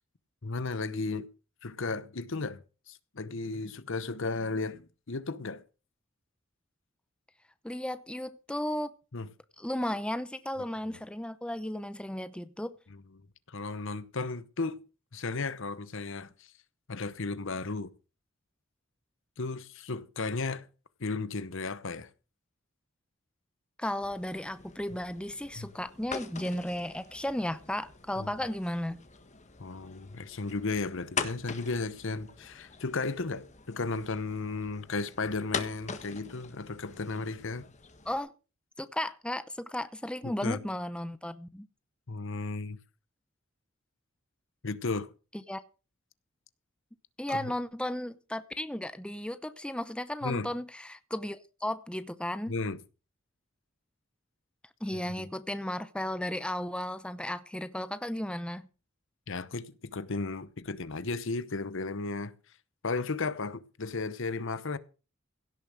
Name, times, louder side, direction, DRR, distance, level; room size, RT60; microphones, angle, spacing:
voice 1, 0.4-1.3 1.6-2.6 2.9-5.6 9.1-9.3 10.9-11.0 12.9-13.0 13.5-14.8 15.1-16.5 16.9-17.9 19.4-20.7 21.0-22.1 25.6-25.7 28.2-28.3 29.6-37.7 40.2-40.6 42.1-42.8 44.6-45.1 47.3-47.5 50.2-50.5 52.5-52.8 59.3-62.3 62.8-64.8, left 3 dB, 65° left, 0.9 m, -34 dB
voice 2, 7.6-8.9 9.6-12.8 23.8-29.0 38.1-38.3 38.8-41.7 45.5-45.6 47.2-52.5 54.8-58.7, left 1 dB, 5° left, 0.7 m, -34 dB
sound 1, 24.0-38.2, left 5 dB, 35° left, 1.5 m, -43 dB
16.5 x 7.1 x 6.4 m
head